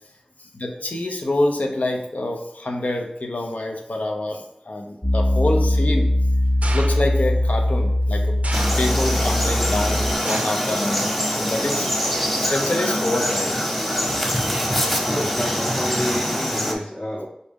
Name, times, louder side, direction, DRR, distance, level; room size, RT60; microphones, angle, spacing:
voice 1, 0.5-6.1 6.7-8.4 8.8-11.1 11.4-11.9 12.4-13.7, left 1 dB, 85° left, 3 dB, 0.7 m, -26 dB
Piano, 5.0-10.1, left 1 dB, 25° left, 0.6 m, -21 dB
sound 1, 6.6-7.3 8.4-9.2 10.3-10.8 11.1-11.6 12.5-12.6, right 2 dB, 70° right, 0.4 m, -33 dB
Frog, 8.5-16.7, equal, 5° left, 1.0 m, -24 dB
voice 2, 15.1-17.3, equal, 50° left, -7 dB, 0.9 m, -29 dB
4.8 x 2.7 x 3.5 m, 0.82 s
wide cardioid pair, 50°, 2 cm